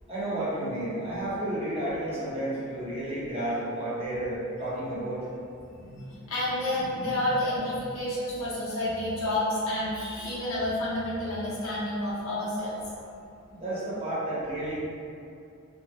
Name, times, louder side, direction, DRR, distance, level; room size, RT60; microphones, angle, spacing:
voice 1, 0.1-5.2 13.5-14.8, right 1 dB, 30° right, -9 dB, 0.7 m, -31 dB
voice 2, 5.7-12.7, left 1 dB, 85° left, -9 dB, 0.7 m, -30 dB
3.0 x 2.1 x 3.2 m, 2.5 s
head